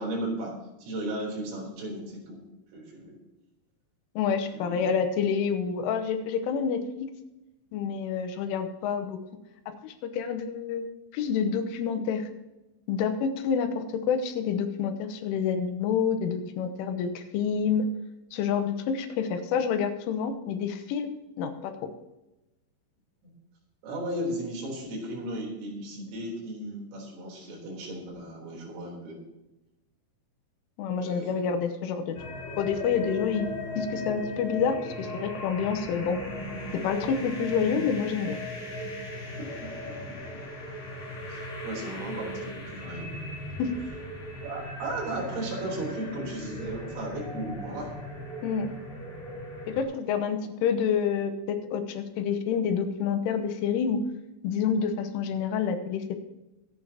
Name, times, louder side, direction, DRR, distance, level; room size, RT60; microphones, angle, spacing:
voice 1, 0.0-2.4 2.7-3.2 4.5-5.0 23.2-23.3 23.8-29.2 30.9-31.6 39.4-40.2 41.3-43.1 44.4-48.0, right 1 dB, 85° right, -2 dB, 6.3 m, -36 dB
voice 2, 4.2-7.1 7.7-9.2 9.7-12.3 12.9-17.9 18.3-21.7 30.8-32.2 32.6-33.5 33.8-36.2 36.7-38.4 43.6-43.7 48.4-48.7 49.7-54.0 54.4-56.2, left 6 dB, 80° left, 8 dB, 3.5 m, -28 dB
sound 1, 32.1-49.8, left 1 dB, 50° left, 4.3 m, -37 dB
23.5 x 8.9 x 2.9 m, 0.99 s
omnidirectional pair, 5.6 m